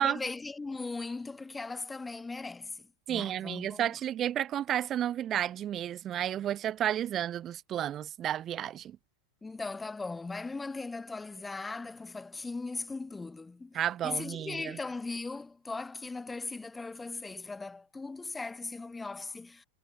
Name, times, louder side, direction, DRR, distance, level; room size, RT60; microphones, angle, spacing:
voice 1, 0.0-3.9 9.4-19.7, left 3 dB, 10° left, 5.6 m, -39 dB
voice 2, 3.1-9.0 13.7-14.8, right 11 dB, 30° right, 4.0 m, -32 dB
figure-of-eight pair, 90°, 0 cm